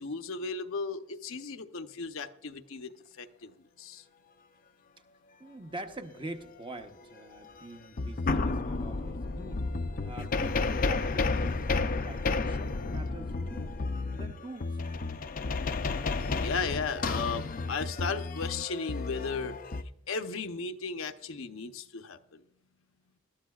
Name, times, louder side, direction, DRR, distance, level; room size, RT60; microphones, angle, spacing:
voice 1, 0.0-3.5 3.8-4.0 16.4-19.5 20.1-22.2, left 4 dB, 70° left, 7 dB, 0.8 m, -35 dB
voice 2, 5.4-9.7 10.0-11.3 11.7-13.8 14.1-14.8, right 2 dB, 25° right, 6 dB, 0.9 m, -44 dB
sound 1, 7.5-7.6 8.0-19.8, left 3 dB, 40° left, 0.6 m, -31 dB
20.5 x 13.0 x 2.4 m, 0.75 s
head